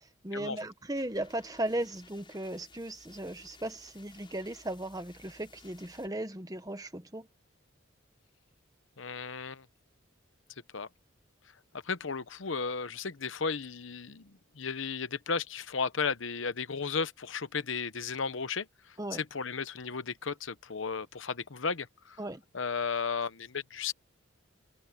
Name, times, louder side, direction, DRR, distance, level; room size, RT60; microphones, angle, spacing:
voice 1, 0.2-7.3 19.0-19.2 22.2-22.4, right 1 dB, 20° right, 1.3 m, -36 dB
sound 1, 1.0-6.1, left 3 dB, 25° left, 6.4 m, -57 dB
voice 2, 9.0-9.6 10.7-10.9 11.9-14.3 14.6-18.7 19.1-22.2 22.5-23.9, left 5 dB, 75° left, 0.9 m, -34 dB
head